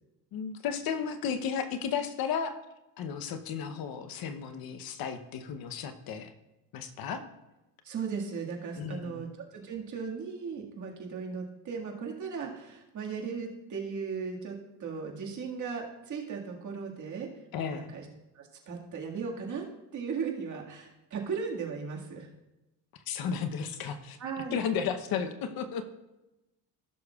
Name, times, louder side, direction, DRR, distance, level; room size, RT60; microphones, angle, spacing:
voice 1, 0.3-2.6 3.0-6.3 6.7-7.2 8.8-9.2 17.5-17.9 22.9-24.2 24.5-25.8, left 7 dB, 60° left, 8 dB, 0.9 m, -34 dB
voice 2, 7.8-17.3 17.6-18.1 18.3-19.7 19.9-22.3 24.2-24.7, right 5 dB, 45° right, 0 dB, 1.9 m, -37 dB
16.0 x 6.5 x 2.4 m, 0.98 s
cardioid pair, 115°, 40 cm